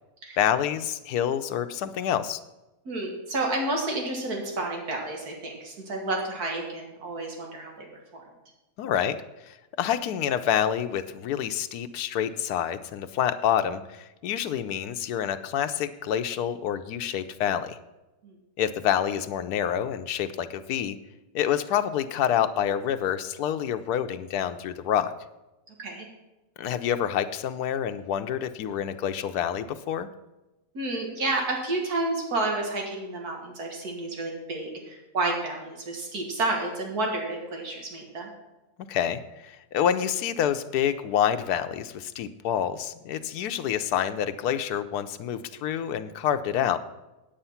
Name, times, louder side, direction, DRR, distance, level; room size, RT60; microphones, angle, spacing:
voice 1, 0.4-2.4 8.8-9.2 9.4-17.8 18.6-21.0 21.3-25.1 26.6-30.1 38.9-46.8, left 9 dB, 90° left, 9 dB, 1.2 m, -27 dB
voice 2, 2.9-8.2 18.2-18.3 25.7-26.1 30.7-38.3, right 2 dB, 85° right, 0 dB, 2.2 m, -30 dB
8.9 x 8.7 x 5.7 m, 1.0 s
omnidirectional pair, 1.6 m